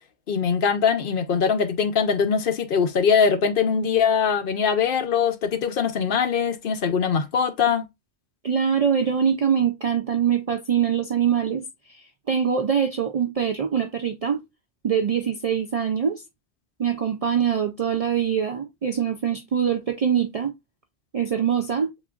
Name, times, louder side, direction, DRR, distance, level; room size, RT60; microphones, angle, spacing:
voice 1, 0.3-7.8, left 6 dB, 60° left, 0.8 m, -22 dB
voice 2, 8.4-14.4 14.8-16.2 16.8-20.5 21.1-21.9, right 8 dB, 55° right, 0.4 m, -23 dB
7.1 x 2.4 x 2.3 m
omnidirectional pair, 1.1 m